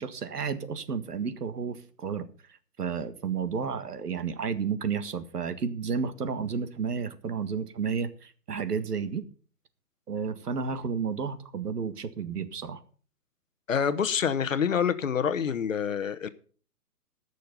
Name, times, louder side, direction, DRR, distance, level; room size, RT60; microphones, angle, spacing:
voice 1, 0.0-2.3 2.8-9.2 10.1-12.8, right 6 dB, 75° right, 1.8 m, -32 dB
voice 2, 13.7-16.3, left 7 dB, 55° left, 1.0 m, -27 dB
14.5 x 6.6 x 6.9 m
hypercardioid pair, 175°, 47 cm